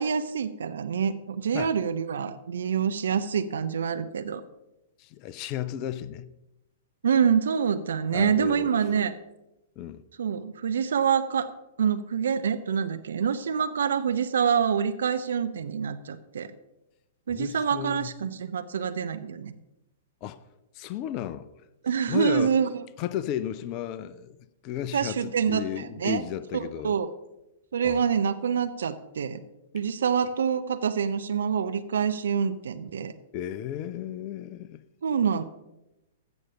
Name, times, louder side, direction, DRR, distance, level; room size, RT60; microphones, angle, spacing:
voice 1, 0.0-4.4 7.0-9.1 10.2-11.5 11.8-16.5 17.3-19.5 21.8-22.8 24.9-26.2 26.5-27.1 27.7-29.4 29.7-33.1 35.0-35.4, right 7 dB, 60° right, 0.6 m, -26 dB
voice 2, 5.0-6.3 8.1-8.7 9.8-10.0 17.3-18.1 20.2-20.4 20.7-21.5 22.1-22.5 23.0-24.4 24.6-27.0 27.8-28.0 33.3-34.8, left 11 dB, 35° left, 0.5 m, -34 dB
15.5 x 6.4 x 5.6 m
figure-of-eight pair, 105°, 0 cm